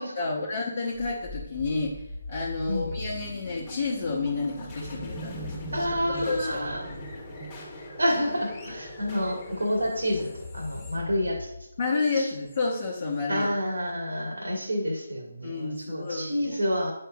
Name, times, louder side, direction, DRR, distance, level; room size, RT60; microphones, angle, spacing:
voice 1, 0.2-5.9 6.1-6.7 11.8-13.5 15.4-16.6, left 3 dB, 40° left, -4 dB, 0.9 m, -30 dB
sound 1, 1.0-12.0, left 2 dB, 20° left, 1.3 m, -39 dB
voice 2, 5.7-6.9 8.0-11.5 12.2-12.3 13.3-16.9, equal, 65° right, 1 dB, 1.7 m, -29 dB
9.1 x 5.4 x 2.4 m, 0.92 s
figure-of-eight pair, 145°, 0 cm